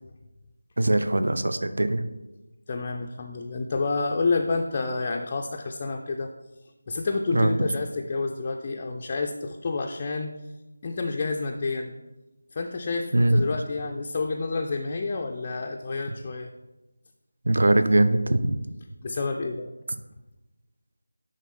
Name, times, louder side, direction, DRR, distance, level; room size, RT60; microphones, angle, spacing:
voice 1, 0.8-2.0 7.3-7.6 13.1-13.4 17.5-18.6, right 1 dB, 60° right, 10 dB, 0.5 m, -21 dB
voice 2, 2.7-6.3 6.9-10.3 10.8-11.9 12.5-16.5 19.0-19.7, left 3 dB, 25° left, 2 dB, 0.4 m, -29 dB
10.0 x 3.5 x 3.7 m, 1.0 s
figure-of-eight pair, 165°, 0 cm